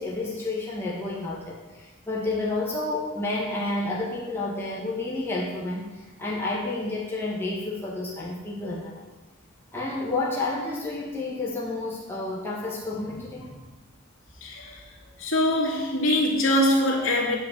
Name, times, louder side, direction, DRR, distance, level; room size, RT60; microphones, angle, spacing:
voice 1, 0.0-9.1 9.7-13.5, left 2 dB, 10° left, -5 dB, 1.7 m, -30 dB
voice 2, 14.4-14.8 15.2-17.4, left 1 dB, 80° left, -3 dB, 2.7 m, -23 dB
9.9 x 5.4 x 7.5 m, 1.2 s
head